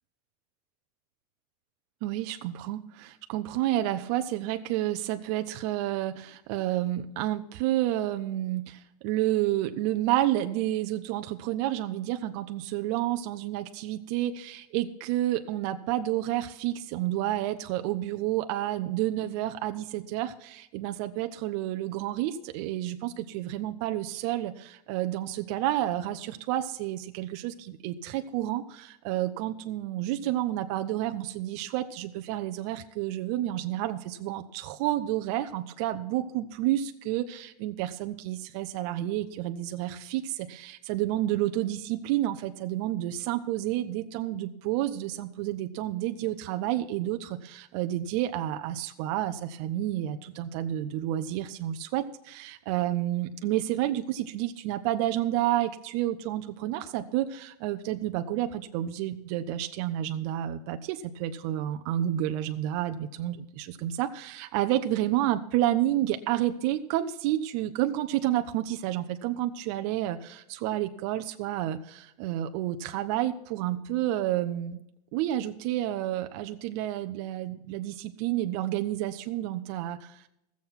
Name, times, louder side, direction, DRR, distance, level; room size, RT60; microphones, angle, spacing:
voice 1, 2.0-74.8 75.1-80.2, right 13 dB, 50° right, 8 dB, 0.7 m, -30 dB
15.5 x 7.3 x 5.8 m, 0.83 s
supercardioid pair, 150°, 19 cm